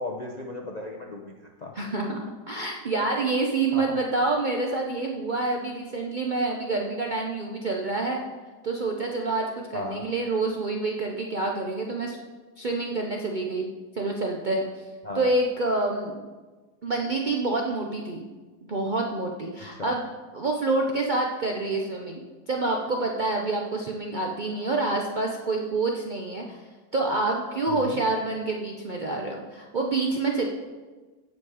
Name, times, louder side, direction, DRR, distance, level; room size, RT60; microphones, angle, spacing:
voice 1, 0.0-1.8 3.7-4.0 9.7-10.0 15.0-15.3 19.8-20.0 27.7-28.0, left 2 dB, 75° left, 1 dB, 0.4 m, -35 dB
voice 2, 1.7-8.2 8.6-12.2 12.6-14.8 15.1-16.2 16.8-18.2 18.7-20.1 20.3-26.6 26.9-30.4, right 3 dB, 80° right, 0 dB, 0.4 m, -27 dB
15.5 x 5.2 x 4.9 m, 1.3 s
omnidirectional pair, 1.9 m